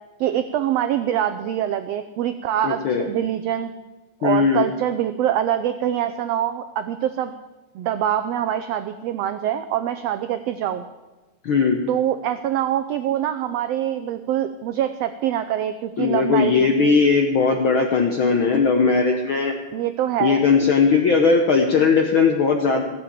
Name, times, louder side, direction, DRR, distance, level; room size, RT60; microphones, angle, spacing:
voice 1, 0.2-3.7 4.2-7.3 7.7-10.8 11.9-16.9 19.7-20.4, right 11 dB, 85° right, 9 dB, 1.4 m, -24 dB
voice 2, 2.6-3.1 4.2-4.7 11.4-11.8 16.0-19.5 20.2-22.8, left 5 dB, 75° left, 3 dB, 1.2 m, -18 dB
15.5 x 7.6 x 8.4 m, 1.2 s
omnidirectional pair, 3.5 m